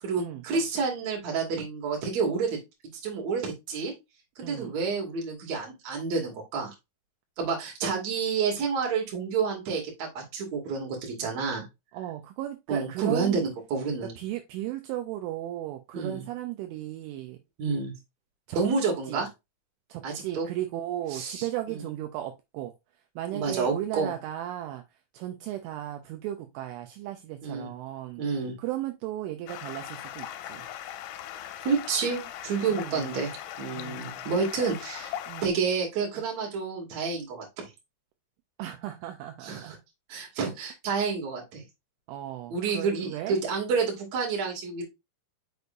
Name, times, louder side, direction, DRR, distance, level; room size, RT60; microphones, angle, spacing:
voice 1, 0.0-2.6 3.0-3.9 4.4-6.7 7.4-11.7 12.7-14.1 15.9-16.2 17.6-17.9 18.5-19.3 20.0-20.5 21.1-21.8 23.3-24.1 27.4-27.7 28.2-28.6 31.6-33.3 33.6-35.1 35.4-37.7 39.4-39.8 40.1-41.6 42.5-44.8, right 5 dB, 45° right, 2.9 m, -29 dB
voice 2, 11.9-13.5 14.0-17.4 18.5-18.7 19.1-19.3 19.9-22.7 23.2-24.8 25.1-28.2 28.6-30.6 32.7-33.1 33.7-34.2 35.3-35.5 38.6-39.8 42.1-43.4, right 13 dB, 80° right, 3.0 m, -35 dB
Stream, 29.5-35.5, left 11 dB, 85° left, 3.2 m, -39 dB
6.7 x 6.3 x 2.6 m
omnidirectional pair, 5.8 m